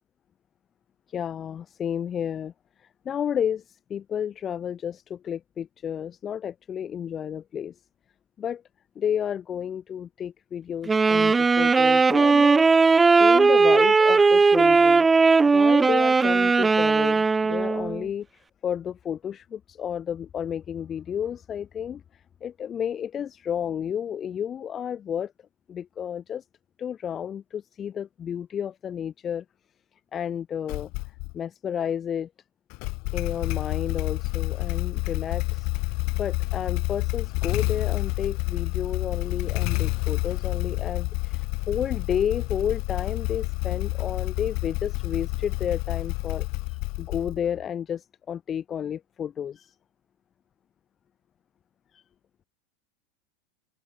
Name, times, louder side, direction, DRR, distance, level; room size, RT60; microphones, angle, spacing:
voice 1, 1.1-2.5 2.8-7.8 8.4-8.6 9.0-12.9 13.2-15.1 15.5-25.3 25.7-26.4 26.8-29.4 30.1-30.9 31.3-32.3 33.1-35.7 36.2-49.7 51.9-52.0, left 8 dB, 30° left, 5.7 m, -31 dB
Wind instrument woodwind instrument, 10.9-18.0, right 4 dB, 15° right, 1.2 m, -18 dB
Motorcycle / Engine starting, 30.7-31.4 32.7-47.6, left 30 dB, 55° left, 1.5 m, -29 dB
hypercardioid pair, 105°, 0 cm